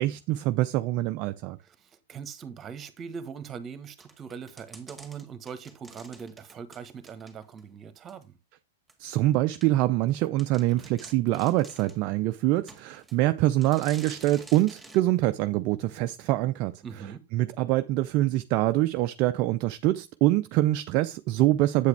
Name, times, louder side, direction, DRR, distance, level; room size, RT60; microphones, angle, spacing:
voice 1, 0.0-1.6 9.0-16.8 17.3-21.9, right 16 dB, 40° right, 0.4 m, -25 dB
voice 2, 1.6-8.4 16.8-17.2, right 6 dB, 25° right, 1.3 m, -41 dB
sound 1, 4.0-7.7 8.1-8.2 8.9-9.0 9.5-9.7 10.1-10.2 10.4-12.0 12.7-13.2 13.6-15.0, right 3 dB, 5° right, 1.9 m, -49 dB
8.2 x 8.0 x 3.4 m
figure-of-eight pair, 100°, 0 cm